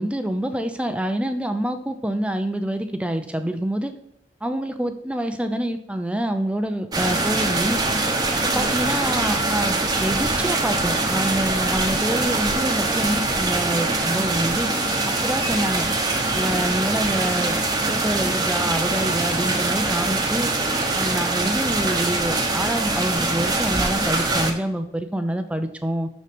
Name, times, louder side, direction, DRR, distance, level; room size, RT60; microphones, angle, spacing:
voice 1, 0.0-3.9 4.4-7.8 8.5-14.7 15.0-15.9 16.3-17.6 17.9-20.5 20.9-26.1, right 1 dB, 5° right, 8 dB, 0.5 m, -26 dB
sound 1, 6.9-24.5, right 2 dB, 20° right, 0.9 m, -23 dB
6.7 x 6.3 x 3.6 m, 0.72 s
head